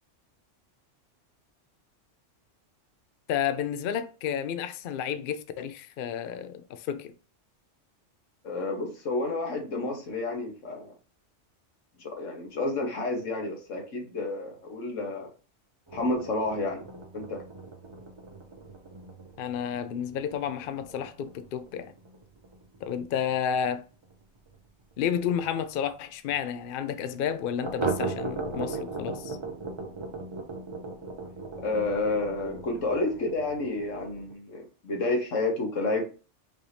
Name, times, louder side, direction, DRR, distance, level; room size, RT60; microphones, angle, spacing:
voice 1, 3.3-7.1 19.4-21.9 22.8-23.8 25.0-29.4, left 8 dB, 60° left, 0.6 m, -31 dB
voice 2, 8.4-10.9 12.0-15.3 15.9-16.8 17.1-17.4 31.6-36.1, left 2 dB, 85° left, 1.6 m, -30 dB
sound 1, 15.9-25.1 25.4-25.5 25.8-25.9 26.3-26.4 27.6-34.3, right 3 dB, 35° right, 0.5 m, -38 dB
5.3 x 2.7 x 3.3 m
omnidirectional pair, 1.3 m